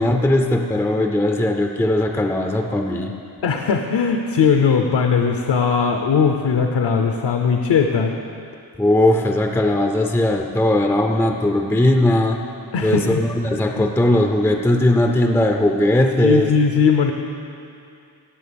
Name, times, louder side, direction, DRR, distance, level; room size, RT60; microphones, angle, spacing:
voice 1, 0.0-3.1 8.8-12.4 12.8-16.5, left 1 dB, 5° left, 4 dB, 0.4 m, -18 dB
voice 2, 3.4-8.1 12.7-13.2 13.8-14.0 16.2-17.1, left 6 dB, 70° left, 4 dB, 0.8 m, -19 dB
16.5 x 7.2 x 5.2 m, 2.5 s
wide cardioid pair, 170°, 44 cm